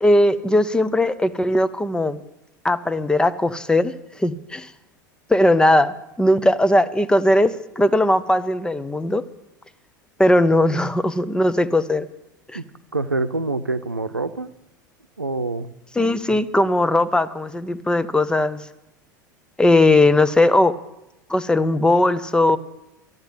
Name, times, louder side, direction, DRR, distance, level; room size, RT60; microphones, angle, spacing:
voice 1, 0.0-2.2 2.6-4.7 5.3-9.2 10.2-12.1 12.5-12.6 16.0-18.7 19.6-20.8 21.3-22.6, left 1 dB, 10° left, 14 dB, 0.8 m, -18 dB
voice 2, 12.9-14.5 15.2-15.7, right 3 dB, 90° right, 11 dB, 0.7 m, -25 dB
13.0 x 9.5 x 9.4 m, 0.91 s
figure-of-eight pair, 80°, 11 cm